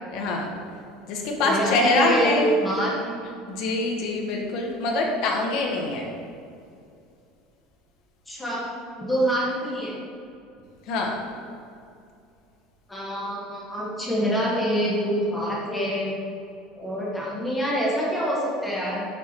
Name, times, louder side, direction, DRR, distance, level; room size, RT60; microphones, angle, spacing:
voice 1, 0.1-0.5 1.1-2.5 3.5-6.1 10.9-11.2, left 2 dB, 50° left, 1 dB, 1.1 m, -24 dB
voice 2, 1.4-3.2 8.3-8.7 9.0-9.9 12.9-16.2 16.8-19.1, equal, 5° left, -5 dB, 1.1 m, -26 dB
6.3 x 4.5 x 4.5 m, 2.5 s
cardioid pair, 170°, 0 cm